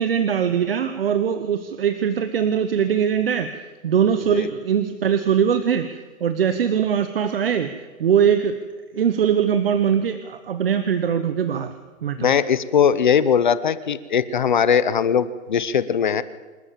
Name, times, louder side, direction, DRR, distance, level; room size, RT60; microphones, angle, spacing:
voice 1, 0.0-8.6 8.9-11.7 12.0-12.3, right 8 dB, 45° right, 9 dB, 1.1 m, -21 dB
voice 2, 12.2-16.2, left 7 dB, 35° left, 16 dB, 0.7 m, -20 dB
27.0 x 13.0 x 7.4 m, 1.4 s
hypercardioid pair, 175°, 42 cm